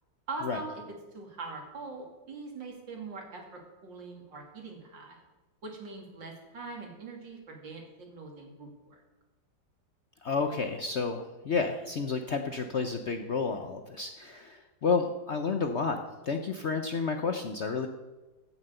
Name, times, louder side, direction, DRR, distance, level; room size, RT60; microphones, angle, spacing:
voice 1, 0.3-0.8 1.1-5.2 5.6-9.0, right 3 dB, 80° right, 1 dB, 3.1 m, -42 dB
voice 2, 10.2-16.0 16.2-17.9, left 4 dB, 60° left, 6 dB, 0.7 m, -31 dB
15.0 x 7.3 x 6.6 m, 1.2 s
omnidirectional pair, 2.0 m